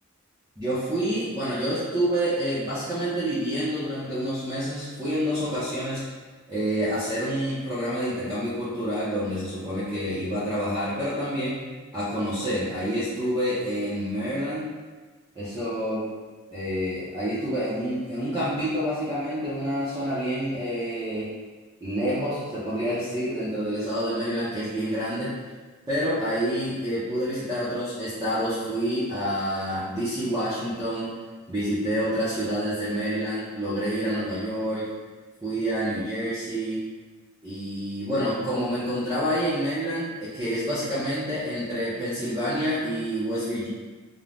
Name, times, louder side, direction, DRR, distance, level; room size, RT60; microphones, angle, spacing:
voice 1, 0.6-6.1 6.5-14.7 15.4-16.0 16.5-21.3 21.8-25.4 25.9-31.1 31.5-34.9 35.4-36.8 37.4-43.7, equal, 15° right, -12 dB, 0.5 m, -28 dB
2.5 x 2.0 x 3.2 m, 1.4 s
head